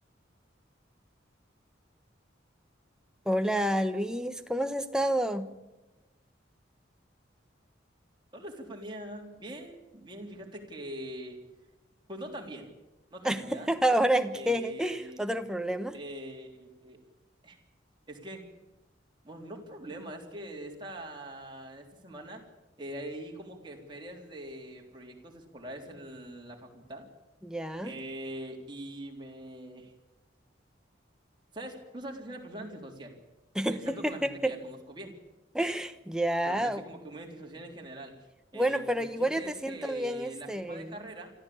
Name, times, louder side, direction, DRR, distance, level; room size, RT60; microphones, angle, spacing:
voice 1, 3.3-5.5 13.2-16.0 27.4-27.9 33.5-34.5 35.5-36.8 38.5-40.9, right 1 dB, 5° right, 8 dB, 1.1 m, -29 dB
voice 2, 8.3-11.4 12.1-12.7 13.1-13.7 14.3-15.4 15.9-17.0 17.4-17.6 18.1-18.5 19.2-22.4 22.8-27.1 27.8-29.9 31.5-33.1 33.7-35.1 36.4-38.1 38.5-41.3, right 1 dB, 25° right, 0 dB, 3.6 m, -43 dB
25.5 x 14.0 x 8.7 m, 1.0 s
head